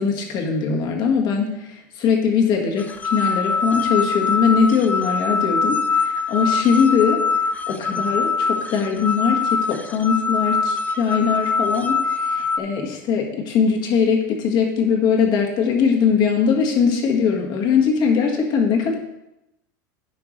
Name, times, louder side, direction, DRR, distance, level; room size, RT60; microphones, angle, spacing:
voice 1, 0.0-19.0, left 6 dB, 45° left, 1 dB, 1.6 m, -21 dB
sound 1, 2.8-12.6, left 4 dB, 15° left, 0.4 m, -23 dB
10.5 x 5.8 x 3.2 m, 0.89 s
supercardioid pair, 140°, 10 cm